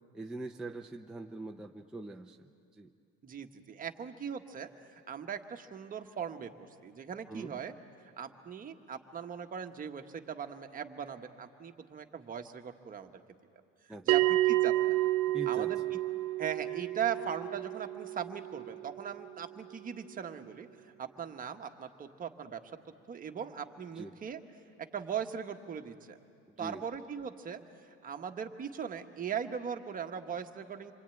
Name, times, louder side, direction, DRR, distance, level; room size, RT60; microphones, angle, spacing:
voice 1, 0.1-2.9 7.3-7.6 13.9-14.1 15.3-15.7 24.0-24.1 26.6-26.8, right 2 dB, ahead, 1 dB, 0.6 m, -43 dB
voice 2, 3.2-6.5 6.8-7.7 8.2-13.1 14.0-14.7 15.3-15.8 16.4-20.7 21.0-22.6 23.1-24.4 24.9-26.2 26.6-27.6 27.9-30.9, right 7 dB, 30° right, 6 dB, 1.3 m, -39 dB
Bell, 14.1-19.1, right 17 dB, 70° right, 0.7 m, -30 dB
27.0 x 23.5 x 9.1 m, 2.6 s
cardioid pair, 140°, 29 cm